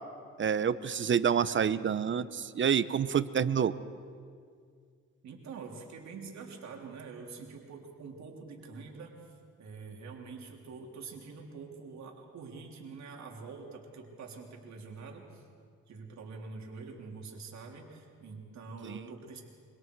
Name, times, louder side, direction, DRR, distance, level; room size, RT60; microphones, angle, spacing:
voice 1, 0.4-3.7 18.9-19.0, right 7 dB, 40° right, 14 dB, 0.9 m, -28 dB
voice 2, 5.2-9.2 9.6-15.5 15.9-19.4, right 4 dB, 65° right, 0 dB, 3.4 m, -45 dB
26.0 x 24.0 x 4.7 m, 2.1 s
cardioid pair, 90°, 30 cm